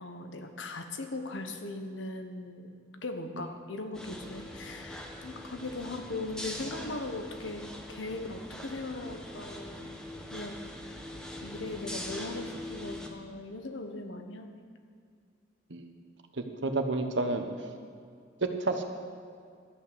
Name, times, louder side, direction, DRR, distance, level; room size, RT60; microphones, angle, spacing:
voice 1, 0.0-10.0 10.3-11.1 11.4-14.6, left 2 dB, 85° left, 6 dB, 1.2 m, -39 dB
sound 1, 3.9-13.1, left 1 dB, 5° left, 1.2 m, -42 dB
voice 2, 16.4-17.5 18.4-18.8, right 3 dB, 70° right, 6 dB, 1.2 m, -30 dB
13.0 x 8.7 x 6.9 m, 2.3 s
head